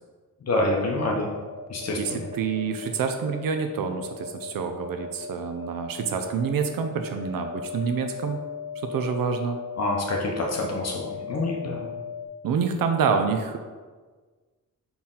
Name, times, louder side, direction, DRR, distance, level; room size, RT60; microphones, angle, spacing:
voice 1, 0.4-1.3 1.7-2.2 9.8-11.9, left 2 dB, 50° left, 0 dB, 0.7 m, -27 dB
sound 1, 0.8-12.3, left 6 dB, 25° right, 0.4 m, -37 dB
voice 2, 2.0-8.4 8.8-9.6 12.4-13.6, right 6 dB, 90° right, 6 dB, 0.6 m, -27 dB
5.8 x 4.3 x 3.7 m, 1.4 s
wide cardioid pair, 165°, 33 cm